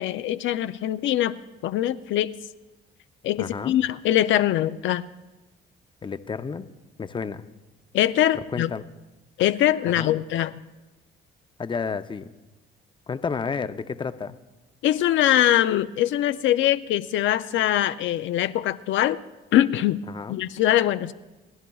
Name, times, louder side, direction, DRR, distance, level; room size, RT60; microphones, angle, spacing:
voice 1, 0.0-1.4 1.6-2.3 3.2-5.1 7.9-8.7 9.4-10.5 14.8-19.2 19.5-20.0 20.3-21.1, left 12 dB, 75° left, 11 dB, 0.4 m, -22 dB
voice 2, 3.4-3.8 6.0-6.7 7.0-7.4 8.5-8.8 9.9-10.1 11.6-12.3 13.1-14.4 20.1-20.4, left 5 dB, 25° left, 11 dB, 0.6 m, -31 dB
29.5 x 10.5 x 2.3 m, 1.1 s
cardioid pair, 90°, 20 cm